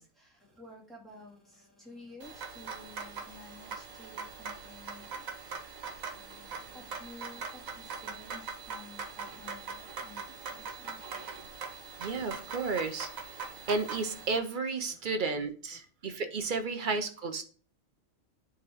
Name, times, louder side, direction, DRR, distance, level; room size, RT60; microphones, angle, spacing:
voice 1, 0.0-5.6 6.1-10.2 10.5-11.5 15.0-15.1, left 2 dB, ahead, 2.1 m, -53 dB
sound 1, 2.2-14.4, right 5 dB, 85° right, 1.4 m, -42 dB
voice 2, 12.0-13.4 13.7-17.4, right 4 dB, 45° right, 0.7 m, -33 dB
9.3 x 3.6 x 3.5 m
omnidirectional pair, 1.4 m